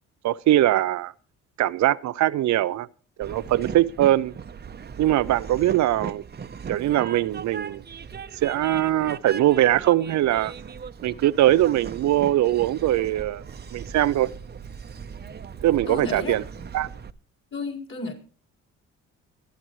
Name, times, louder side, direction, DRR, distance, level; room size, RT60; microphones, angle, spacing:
voice 1, 0.2-1.1 1.6-2.9 3.2-4.3 5.0-6.2 6.7-7.8 8.4-10.5 11.0-13.4 13.7-14.3 15.6-16.4 16.7-16.9, right 13 dB, 65° right, 0.6 m, -21 dB
Train, 3.2-17.1, right 6 dB, 35° right, 0.8 m, -38 dB
voice 2, 15.9-16.7 17.5-18.1, left 3 dB, 40° left, 4.6 m, -33 dB
24.0 x 10.5 x 3.1 m
cardioid pair, 90°, 30 cm